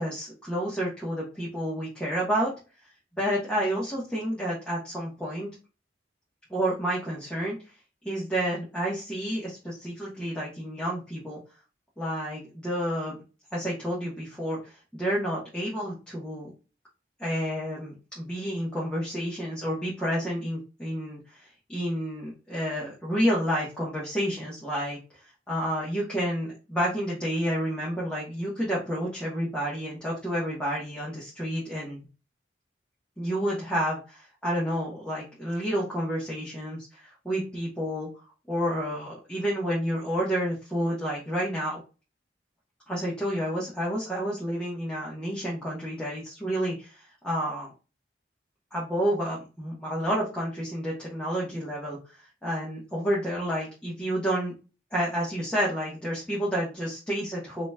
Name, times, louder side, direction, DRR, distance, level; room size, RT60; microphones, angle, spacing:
voice 1, 0.0-2.5 3.2-5.5 6.5-7.6 8.0-11.4 12.0-13.2 13.5-16.5 17.2-25.2 25.5-32.0 33.2-38.1 38.5-41.8 42.9-47.7 48.7-52.0 52.4-54.5 54.9-57.7, equal, 5° left, -6 dB, 1.1 m, -30 dB
5.4 x 2.8 x 2.2 m, 0.32 s
head